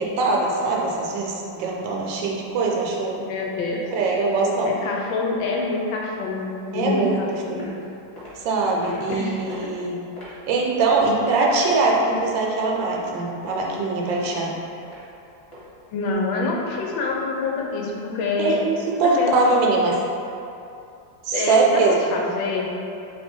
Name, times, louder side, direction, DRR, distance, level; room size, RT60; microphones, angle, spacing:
voice 1, 0.0-3.2 3.9-4.7 6.7-7.2 7.5-7.7 8.4-10.0 10.5-14.5 18.4-20.0 21.2-22.0, right 3 dB, 75° right, -2 dB, 1.3 m, -22 dB
voice 2, 3.3-3.8 4.6-6.5 6.7-7.7 9.1-9.4 15.9-18.6 19.0-19.3 21.3-22.7, left 3 dB, 85° left, -1 dB, 1.4 m, -26 dB
sound 1, 7.6-7.8 8.2-8.4 8.8-9.2 9.5-9.6 10.2-10.4 10.8-11.1 11.4-12.2 12.8-13.1 13.4-13.6 14.1-14.3 14.8-15.0 15.5-15.6 16.1-16.2, equal, 35° left, 1.4 m, -41 dB
3.5 x 3.2 x 4.3 m, 2.6 s
omnidirectional pair, 2.1 m